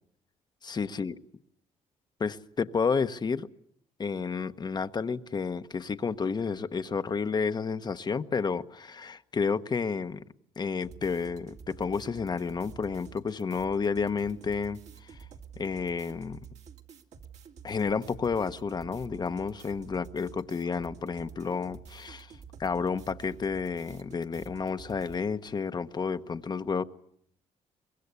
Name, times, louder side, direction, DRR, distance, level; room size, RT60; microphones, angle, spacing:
voice 1, 0.6-1.2 2.2-3.5 4.0-10.2 10.6-15.2 15.6-16.4 17.6-22.3 22.6-26.8, left 5 dB, 35° left, 1.0 m, -31 dB
sound 1, 10.8-25.2, right 7 dB, 70° right, 2.5 m, -49 dB
24.0 x 21.5 x 8.2 m
cardioid pair, 100°, 12 cm